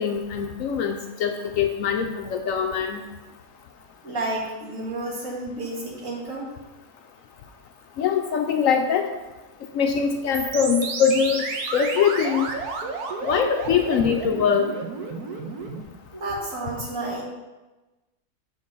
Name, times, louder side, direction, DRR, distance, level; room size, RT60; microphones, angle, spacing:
voice 1, 0.0-3.0 8.0-9.1 9.7-11.4 11.7-12.5 13.2-14.7, left 7 dB, 70° left, 5 dB, 0.9 m, -22 dB
voice 2, 4.0-6.5 16.1-17.2, right 2 dB, 55° right, -3 dB, 2.1 m, -31 dB
sound 1, 10.3-15.8, right 4 dB, 80° right, 1.4 m, -31 dB
6.5 x 4.9 x 5.3 m, 1.1 s
omnidirectional pair, 1.6 m